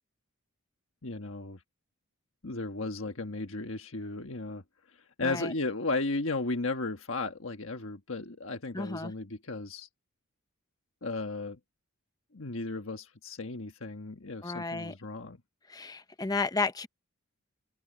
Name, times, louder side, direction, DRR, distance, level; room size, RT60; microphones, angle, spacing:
voice 1, 1.0-1.6 2.4-4.6 5.2-9.9 11.0-11.6 12.3-15.4, left 3 dB, 60° left, 1.5 m, -35 dB
voice 2, 5.2-5.5 8.7-9.1 14.4-14.9 15.7-16.9, left 3 dB, 15° left, 0.7 m, -32 dB
head